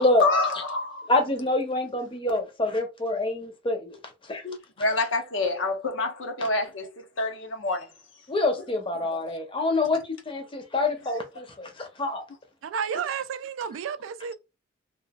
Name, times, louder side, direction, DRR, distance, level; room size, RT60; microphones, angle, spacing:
voice 1, 0.0-1.1 4.8-7.9 9.2-9.3, left 3 dB, 70° left, 0.7 m, -27 dB
voice 2, 1.1-4.0 4.3-4.6 8.3-12.2, left 2 dB, 25° left, 0.7 m, -26 dB
voice 3, 12.6-14.3, right 7 dB, 80° right, 0.3 m, -31 dB
2.9 x 2.3 x 2.3 m
head